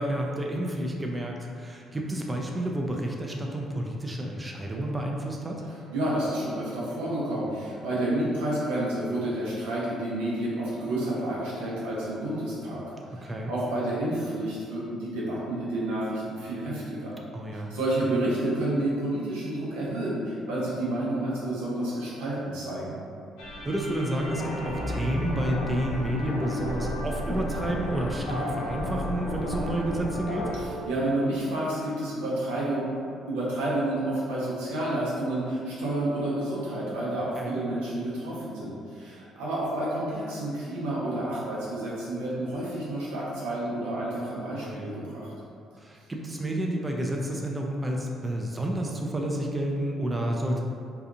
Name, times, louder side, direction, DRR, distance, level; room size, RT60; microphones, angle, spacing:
voice 1, 0.0-5.6 13.2-13.5 17.3-17.7 23.6-30.6 37.4-37.6 44.5-45.0 45.8-50.6, right 1 dB, 20° right, 0 dB, 0.3 m, -30 dB
voice 2, 5.9-12.8 13.1-17.2 17.5-23.0 30.6-32.8 33.3-45.3, right 1 dB, 90° right, -7 dB, 0.7 m, -30 dB
sound 1, 23.4-30.7, equal, 85° left, 0.4 m, -32 dB
2.7 x 2.3 x 2.5 m, 2.3 s
supercardioid pair, 65°, 0 cm